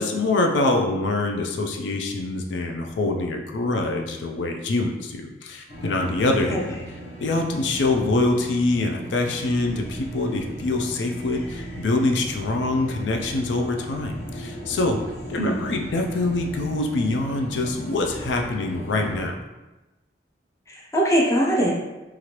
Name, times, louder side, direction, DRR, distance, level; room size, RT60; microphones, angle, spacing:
voice 1, 0.0-6.8 7.2-15.0 15.3-19.4, left 2 dB, 85° left, 3 dB, 0.4 m, -24 dB
sound 1, 5.7-19.3, equal, 55° left, 0.9 m, -37 dB
voice 2, 15.4-15.8 20.7-21.7, right 1 dB, 15° left, -3 dB, 0.5 m, -22 dB
3.1 x 2.4 x 2.8 m, 1.1 s
head